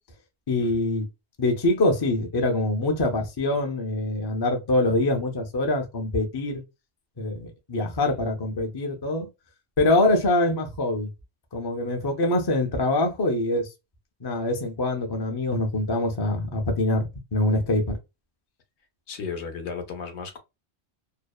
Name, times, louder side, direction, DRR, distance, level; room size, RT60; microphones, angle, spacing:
voice 1, 0.5-1.1 1.4-6.6 7.2-9.3 9.8-11.1 11.5-13.7 14.2-18.0, left 2 dB, 40° left, 0.3 m, -24 dB
voice 2, 19.1-20.4, left 5 dB, 75° left, 0.9 m, -35 dB
2.6 x 2.1 x 2.3 m
omnidirectional pair, 1.2 m